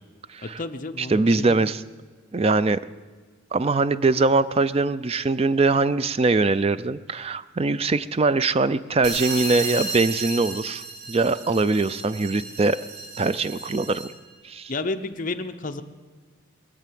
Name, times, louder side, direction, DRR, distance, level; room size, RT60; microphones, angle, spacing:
voice 1, 0.4-1.9 14.7-15.8, left 3 dB, 40° left, 8 dB, 0.7 m, -31 dB
voice 2, 1.0-1.8 2.3-2.8 3.5-10.8 11.1-12.8 13.2-14.1 14.4-14.7, right 3 dB, 30° right, 15 dB, 0.4 m, -22 dB
sound 1, 9.0-14.3, right 2 dB, 80° right, 3.4 m, -33 dB
22.0 x 7.9 x 7.6 m, 1.5 s
head